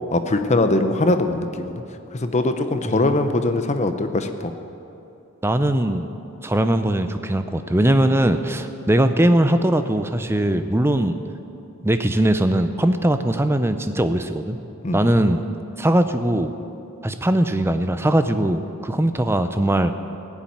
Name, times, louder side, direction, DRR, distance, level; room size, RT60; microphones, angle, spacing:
voice 1, 0.1-1.8 2.1-4.5 14.8-15.2, left 2 dB, 30° left, 8 dB, 0.8 m, -21 dB
voice 2, 5.4-6.1 6.4-11.2 11.8-14.6 14.9-15.4 15.8-16.5 17.0-19.9, right 1 dB, 10° right, 9 dB, 0.5 m, -20 dB
16.0 x 7.3 x 9.3 m, 2.8 s
head